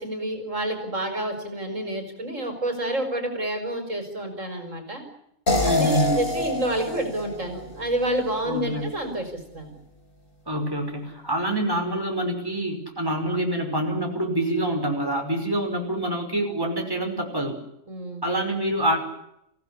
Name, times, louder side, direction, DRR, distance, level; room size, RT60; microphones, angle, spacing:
voice 1, 0.0-5.0 5.7-9.7 17.9-18.2, right 1 dB, 60° right, 5 dB, 5.2 m, -29 dB
sound 1, 5.5-8.5, left 1 dB, 40° left, 4.4 m, -27 dB
voice 2, 5.6-6.3 8.4-8.9 10.5-17.6 18.2-19.0, right 1 dB, 15° right, 2 dB, 5.6 m, -26 dB
28.0 x 17.0 x 9.9 m, 0.80 s
omnidirectional pair, 1.5 m